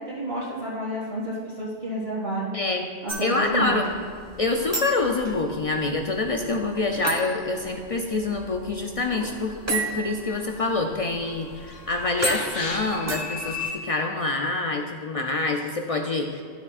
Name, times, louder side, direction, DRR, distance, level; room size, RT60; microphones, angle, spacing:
voice 1, 0.1-2.5 3.0-3.8, right 1 dB, 60° right, -10 dB, 2.2 m, -30 dB
voice 2, 2.5-2.9 3.2-3.9 4.4-16.4, left 3 dB, 60° left, 3 dB, 0.3 m, -26 dB
sound 1, 3.1-13.7, right 2 dB, 15° right, 1.0 m, -35 dB
sound 2, 9.5-10.1 10.4-10.8 11.1-13.1 13.6-13.7, left 4 dB, 85° left, 1.1 m, -38 dB
sound 3, 9.5-13.7, left 6 dB, 40° left, 0.8 m, -39 dB
12.0 x 6.9 x 2.4 m, 2.3 s
omnidirectional pair, 1.1 m